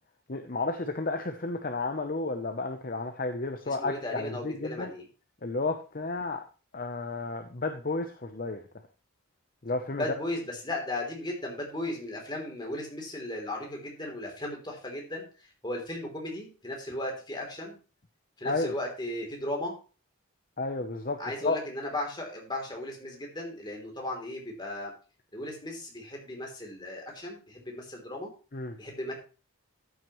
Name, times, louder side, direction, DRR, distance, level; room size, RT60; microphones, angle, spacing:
voice 1, 0.3-4.9 5.4-6.4 6.7-8.6 9.6-10.0 18.4-18.7 20.6-21.6 28.5-28.8, left 3 dB, 40° left, 6 dB, 0.8 m, -32 dB
voice 2, 3.6-5.0 9.9-17.8 18.4-19.7 21.2-24.9 25.3-28.3 28.8-29.1, left 1 dB, 20° left, 0 dB, 3.3 m, -36 dB
14.0 x 9.2 x 3.1 m, 0.34 s
head